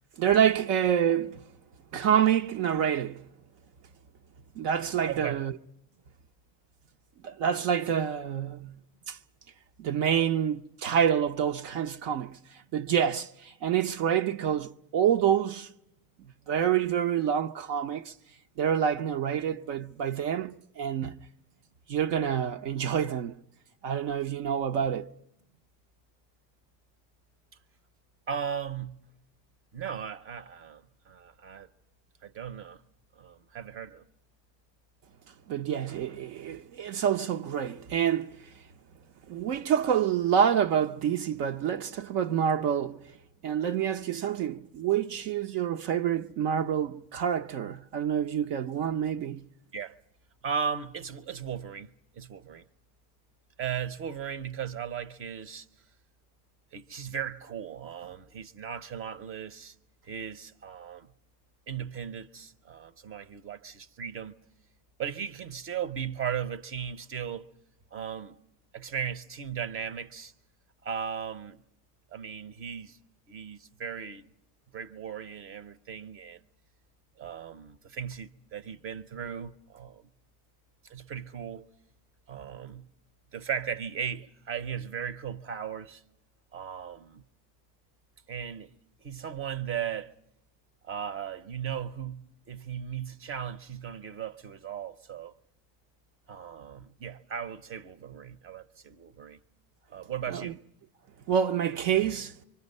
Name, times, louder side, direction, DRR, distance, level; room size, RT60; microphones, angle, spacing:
voice 1, 0.2-1.4 1.9-3.3 4.6-5.5 7.2-8.7 9.1-9.2 9.8-15.7 16.5-18.1 18.6-21.1 21.9-23.3 23.8-25.1 35.5-38.5 39.3-43.0 43.4-49.5 100.3-100.5 101.3-102.4, right 9 dB, 60° right, 0.8 m, -27 dB
voice 2, 5.1-5.4 28.3-29.0 29.7-31.7 32.2-32.8 33.2-34.0 49.7-49.9 50.4-52.6 53.6-55.7 56.7-59.7 60.0-61.1 61.7-64.3 65.0-67.5 67.9-68.4 68.7-70.3 70.8-71.6 72.1-73.0 73.3-74.3 74.7-76.4 77.2-80.1 80.8-81.7 82.3-82.9 83.3-86.0 86.5-87.2 88.3-88.7 89.0-90.1 90.8-95.3 96.3-99.4 99.9-100.6, right 8 dB, 25° right, 0.7 m, -37 dB
25.0 x 24.5 x 5.4 m
supercardioid pair, 120°, 49 cm